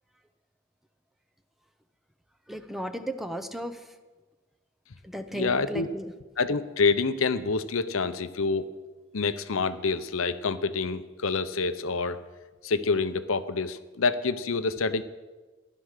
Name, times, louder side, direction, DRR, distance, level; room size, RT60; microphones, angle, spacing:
voice 1, 2.5-3.9 5.0-6.1, equal, ahead, 7 dB, 0.7 m, -35 dB
voice 2, 5.3-5.9 6.4-8.7 9.1-12.2 12.6-15.0, left 4 dB, 70° left, 12 dB, 0.7 m, -27 dB
15.0 x 11.5 x 6.6 m, 1.3 s
head